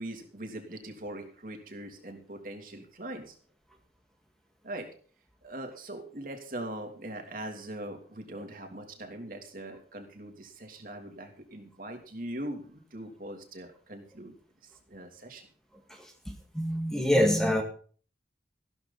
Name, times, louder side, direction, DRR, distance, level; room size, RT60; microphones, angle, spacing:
voice 1, 0.0-3.4 4.6-4.9 5.4-14.3 14.6-15.5, right 1 dB, 50° right, 4 dB, 3.1 m, -41 dB
voice 2, 15.9-17.6, equal, 5° left, 2 dB, 1.9 m, -26 dB
15.0 x 12.5 x 4.2 m, 0.42 s
head